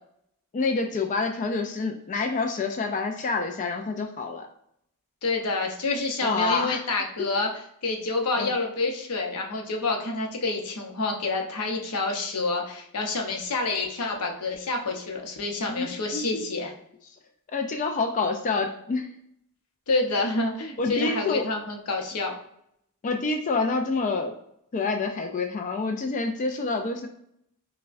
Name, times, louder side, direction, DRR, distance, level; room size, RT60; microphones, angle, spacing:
voice 1, 0.5-4.5 6.2-6.8 8.4-8.5 15.7-16.2 17.5-19.1 20.8-21.4 23.0-24.3 24.7-27.1, left 4 dB, 35° left, 4 dB, 0.3 m, -27 dB
voice 2, 5.2-7.5 7.8-16.7 19.9-22.4, left 3 dB, 90° left, 2 dB, 0.8 m, -28 dB
5.4 x 2.2 x 2.5 m, 0.72 s
head